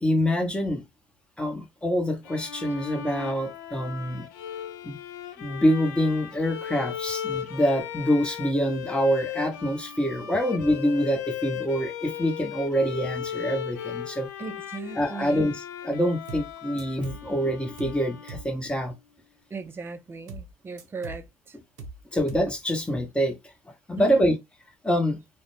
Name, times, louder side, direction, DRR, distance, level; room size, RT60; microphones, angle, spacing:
voice 1, 0.0-0.8 1.4-4.3 4.8-5.0 5.4-14.3 15.0-15.5 15.8-18.9 22.1-23.4 23.9-24.3 24.8-25.2, equal, 10° left, 0.8 m, -25 dB
Bowed string instrument, 2.2-18.8, left 10 dB, 85° left, 0.4 m, -37 dB
voice 2, 14.4-15.5 19.5-21.6 24.0-24.3, right 4 dB, 25° right, 0.5 m, -37 dB
sound 1, 16.3-16.5 16.8-17.3 17.8-18.0 18.3-18.5 20.3-20.5 20.8-21.3 21.8-22.0 22.3-22.5 22.8-22.9, right 3 dB, 90° right, 0.6 m, -40 dB
2.4 x 2.1 x 3.1 m
hypercardioid pair, 80°, 9 cm